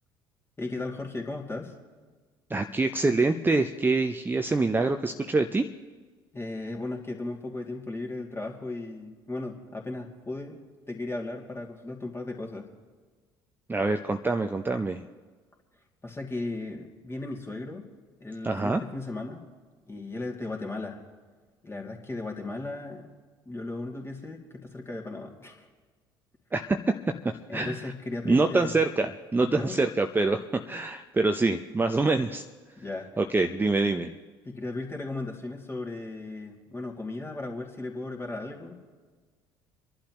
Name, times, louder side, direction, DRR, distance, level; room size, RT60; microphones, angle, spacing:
voice 1, 0.6-1.7 6.3-10.6 10.9-12.7 16.0-17.9 18.2-19.4 19.9-21.0 21.6-23.1 23.5-25.7 27.5-28.8 29.4-29.8 32.8-33.1 34.4-38.7, left 2 dB, 20° left, 1 dB, 2.6 m, -36 dB
voice 2, 2.5-5.7 13.7-15.0 18.4-18.8 26.5-26.8 27.5-27.9 28.2-30.4 30.7-32.4 33.2-34.2, right 3 dB, 15° right, 6 dB, 0.8 m, -25 dB
28.0 x 11.5 x 3.1 m, 1.4 s
figure-of-eight pair, 60°, 12 cm